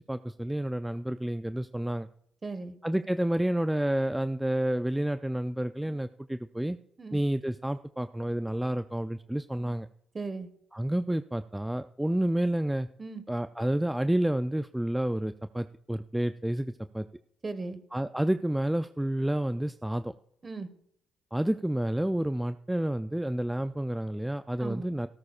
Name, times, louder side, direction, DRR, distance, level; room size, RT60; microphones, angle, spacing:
voice 1, 0.1-2.1 2.8-6.8 7.1-9.9 10.7-12.9 13.3-17.1 17.9-20.1 21.3-25.1, right 1 dB, 5° right, 11 dB, 0.3 m, -29 dB
voice 2, 2.4-2.7 7.0-7.2 10.1-10.5 13.0-13.2 17.4-17.8 20.4-20.7 24.6-24.9, right 3 dB, 30° right, 11 dB, 1.3 m, -37 dB
17.0 x 13.5 x 2.4 m, 0.70 s
cardioid pair, 90°, 0 cm